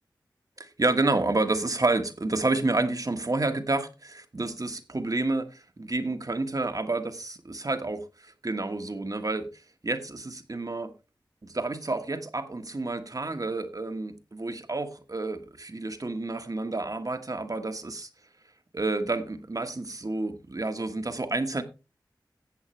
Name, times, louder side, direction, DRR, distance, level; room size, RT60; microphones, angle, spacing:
voice 1, 0.6-9.5 9.8-10.9 11.4-18.1 18.7-21.6, right 2 dB, 45° right, 1.4 m, -29 dB
14.5 x 8.0 x 3.2 m
cardioid pair, 40°, 8 cm